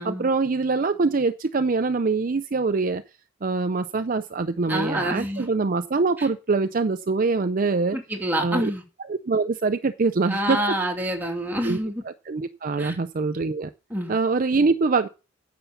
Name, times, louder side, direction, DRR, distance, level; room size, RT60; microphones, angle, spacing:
voice 1, 0.0-3.0 3.4-8.0 8.4-8.7 9.1-10.6 11.6-11.8 12.1-13.7 14.1-15.1, right 4 dB, 40° right, 0.5 m, -24 dB
voice 2, 4.7-5.5 6.2-6.3 7.9-8.8 10.3-12.0 12.8-13.0 13.9-14.1, right 1 dB, 10° right, 2.6 m, -27 dB
9.9 x 7.0 x 6.9 m
head